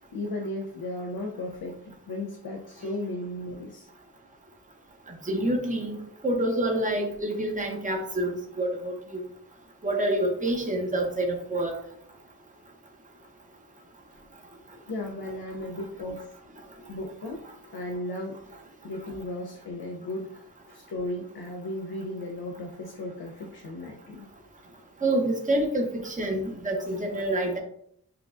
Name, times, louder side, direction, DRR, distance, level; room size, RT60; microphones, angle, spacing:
voice 1, 0.1-3.9 14.9-16.4 16.9-17.4 17.7-18.4 18.8-24.3, left 1 dB, 85° left, 2 dB, 0.6 m, -35 dB
voice 2, 5.3-6.0 6.2-9.2 9.8-11.7 25.0-27.6, right 1 dB, 20° right, 1 dB, 0.7 m, -27 dB
5.8 x 2.3 x 2.4 m, 0.67 s
wide cardioid pair, 80°, 37 cm